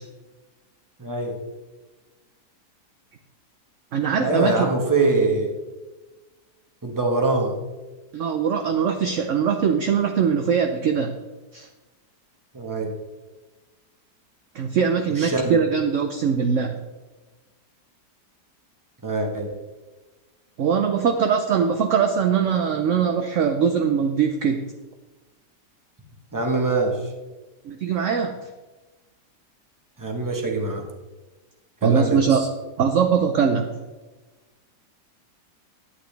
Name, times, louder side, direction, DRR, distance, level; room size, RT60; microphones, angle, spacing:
voice 1, 1.0-1.4 4.2-5.5 6.8-7.5 12.5-12.9 15.1-15.6 19.0-19.5 26.3-27.0 30.0-30.8 31.8-32.5, right 3 dB, 10° right, 1 dB, 1.3 m, -23 dB
voice 2, 3.9-4.7 8.1-11.1 11.5-11.7 14.5-16.8 20.6-24.6 27.7-28.4 31.8-32.4 32.8-33.7, right 7 dB, 60° right, 6 dB, 0.8 m, -21 dB
11.5 x 8.7 x 3.4 m, 1.2 s
omnidirectional pair, 1.8 m